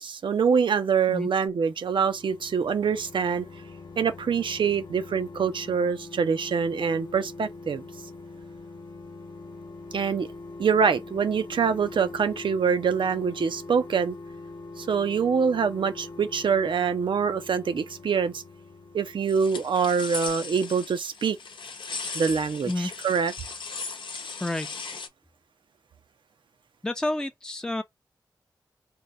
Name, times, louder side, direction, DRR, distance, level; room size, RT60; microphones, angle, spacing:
voice 1, 0.0-3.5 4.0-7.8 9.9-10.3 10.6-14.2 14.8-18.4 18.9-21.4 22.1-23.3, right 6 dB, 85° right, 0.6 m, -25 dB
sound 1, 1.5-20.0 20.3-20.4, left 3 dB, 55° left, 0.8 m, -43 dB
sound 2, 19.3-25.1, left 4 dB, 90° left, 0.8 m, -37 dB
voice 2, 24.4-24.7 26.8-27.8, left 1 dB, 10° left, 0.5 m, -29 dB
3.8 x 2.2 x 4.0 m
wide cardioid pair, 75°, 8 cm